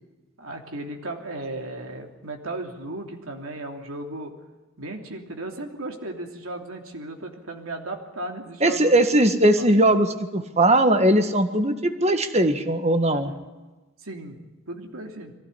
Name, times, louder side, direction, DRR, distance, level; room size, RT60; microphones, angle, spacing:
voice 1, 0.4-4.3 4.8-8.9 9.6-9.7 13.1-13.3 14.0-14.4 14.7-15.3, right 2 dB, 75° right, 2 dB, 3.1 m, -35 dB
voice 2, 8.6-13.3, right 1 dB, 30° right, 8 dB, 1.6 m, -19 dB
22.5 x 16.0 x 9.9 m, 1.2 s
head